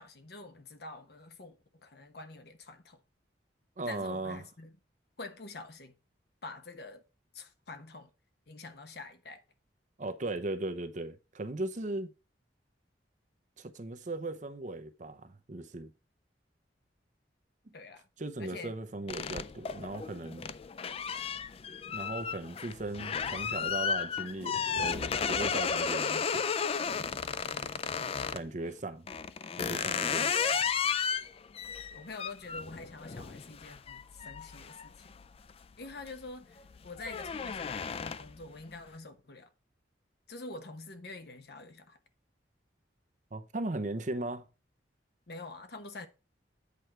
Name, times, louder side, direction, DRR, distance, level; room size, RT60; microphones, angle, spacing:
voice 1, 0.0-1.6 1.8-3.0 3.9-4.8 5.2-6.0 6.4-7.0 7.3-8.1 8.5-9.4 17.7-18.1 18.4-18.8 31.9-35.1 35.8-39.5 40.3-42.0 45.3-46.1, left 3 dB, 60° left, 1.0 m, -46 dB
voice 2, 3.8-4.4 10.0-12.1 13.6-15.9 17.7-17.8 18.2-20.5 21.9-26.5 28.3-29.1 29.6-30.3 43.3-44.5, right 2 dB, 40° right, 0.7 m, -38 dB
sound 1, 19.1-28.5 29.1-35.5 35.9-36.3 36.6-38.4, left 6 dB, 30° left, 0.3 m, -33 dB
8.4 x 4.6 x 4.5 m
head